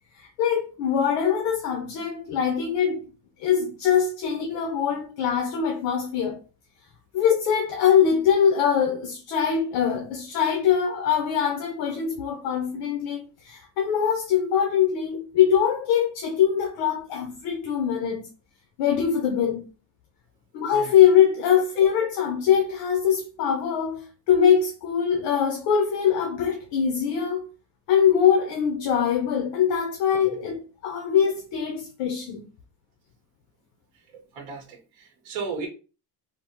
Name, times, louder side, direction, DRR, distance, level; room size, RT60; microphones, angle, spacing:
voice 1, 0.1-3.1 3.4-6.4 7.1-18.3 18.8-19.7 20.5-27.5 27.9-32.5, left 8 dB, 65° left, 0.6 m, -23 dB
voice 2, 33.9-35.7, right 4 dB, 85° right, 0.9 m, -36 dB
2.9 x 2.0 x 2.8 m
cardioid pair, 175°, 47 cm